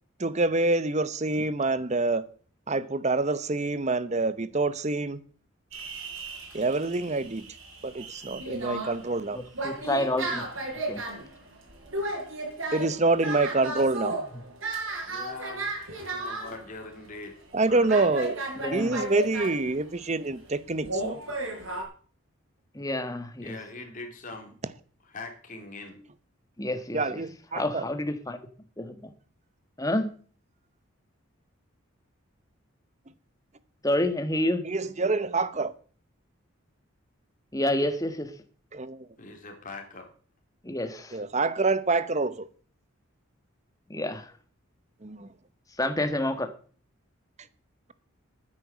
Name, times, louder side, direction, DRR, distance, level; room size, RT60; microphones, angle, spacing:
voice 1, 0.2-2.2 2.7-5.2 6.5-7.4 7.8-9.4 12.7-14.1 17.5-18.4 18.7-21.2 26.9-27.8 34.6-35.7 38.7-39.1 41.1-42.5 45.0-45.3, right 3 dB, 30° right, 0.8 m, -26 dB
sound 1, 5.7-16.7 17.1-17.2 17.6-17.7 17.9-20.1 20.8-21.8, right 2 dB, 60° right, 5.5 m, -34 dB
voice 2, 9.3-10.4 10.9-11.0 18.6-19.0 22.7-23.6 26.6-27.2 27.5-28.4 28.8-29.1 29.8-30.1 33.8-34.7 37.5-38.3 40.6-41.2 43.9-44.3 45.8-46.5, left 1 dB, 15° left, 1.4 m, -28 dB
voice 3, 15.0-17.4 17.6-17.9 23.4-24.6 25.0-26.0 39.2-40.1, left 3 dB, 35° left, 3.1 m, -42 dB
9.9 x 9.1 x 8.2 m
head